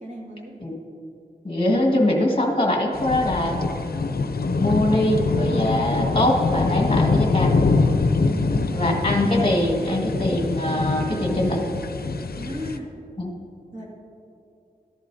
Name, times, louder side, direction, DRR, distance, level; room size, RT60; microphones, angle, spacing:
voice 1, 0.0-0.5 8.2-8.8 12.4-12.9 13.7-13.9, equal, 50° right, -3 dB, 2.2 m, -35 dB
voice 2, 1.4-3.6 4.6-7.5 8.7-11.6 13.2-13.3, left 1 dB, 35° left, 1 dB, 1.7 m, -22 dB
sound 1, 2.9-12.8, left 3 dB, 80° left, 0.5 m, -24 dB
14.0 x 11.0 x 2.7 m, 2.6 s
wide cardioid pair, 65°, 16 cm